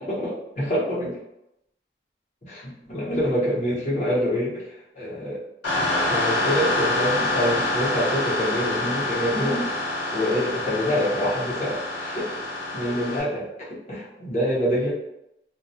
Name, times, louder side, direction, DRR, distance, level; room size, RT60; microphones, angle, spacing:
voice 1, 0.1-1.2 2.4-5.4 5.9-9.7 10.1-12.4 12.7-14.9, equal, 40° left, -7 dB, 0.8 m, -26 dB
sound 1, 5.6-13.2, left 2 dB, 85° left, 1.1 m, -26 dB
2.2 x 2.1 x 2.7 m, 0.86 s
head